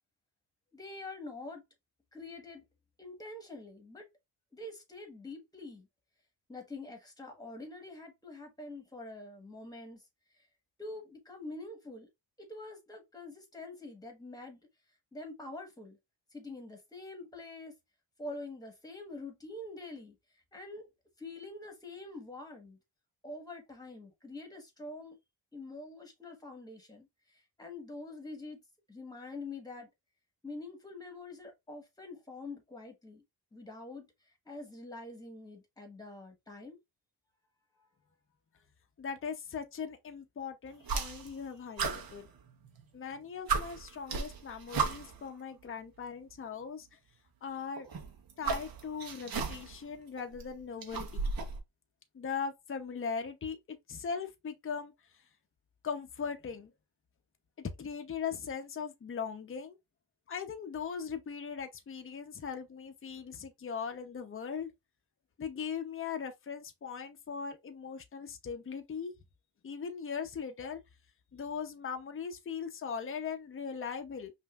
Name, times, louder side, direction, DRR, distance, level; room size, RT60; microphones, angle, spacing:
voice 1, 0.7-1.6 2.1-2.6 3.0-4.1 4.5-5.9 6.5-10.0 10.8-12.1 12.4-14.6 15.1-16.0 16.3-17.7 18.2-20.1 20.5-20.9 21.2-22.8 23.2-25.2 25.5-28.6 28.9-29.9 30.4-33.2 33.5-34.1 34.4-36.8, left 2 dB, 10° left, 1.4 m, -45 dB
voice 2, 39.0-42.3 42.9-47.0 47.4-47.9 48.4-51.3 52.1-54.9 55.8-56.7 57.6-59.8 60.3-64.7 65.4-69.1 69.6-70.8 71.3-74.3, left 6 dB, 30° left, 0.8 m, -39 dB
sound 1, 40.8-41.4 41.8-42.8 43.1-43.2 43.5-45.3 46.3-46.4 47.8-49.8 50.2-51.6, right 5 dB, 55° right, 1.1 m, -35 dB
5.4 x 2.7 x 2.4 m
cardioid pair, 110°, 43 cm